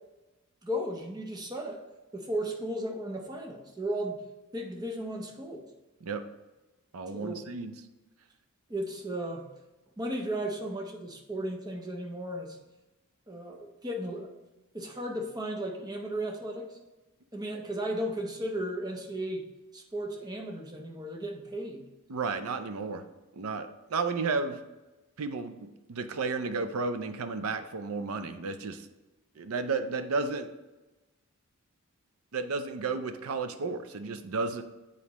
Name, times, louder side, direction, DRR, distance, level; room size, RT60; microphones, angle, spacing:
voice 1, 0.6-1.8 2.1-4.2 4.5-5.7 7.1-7.5 8.7-9.5 10.0-12.6 13.3-14.3 14.7-16.8 17.3-19.4 19.7-21.9, right 1 dB, 20° right, 1 dB, 0.7 m, -35 dB
voice 2, 6.9-7.8 22.1-23.0 23.3-24.6 25.2-28.9 29.4-30.5 32.3-34.6, right 4 dB, 80° right, 9 dB, 0.5 m, -32 dB
8.3 x 4.1 x 3.0 m, 1.1 s
head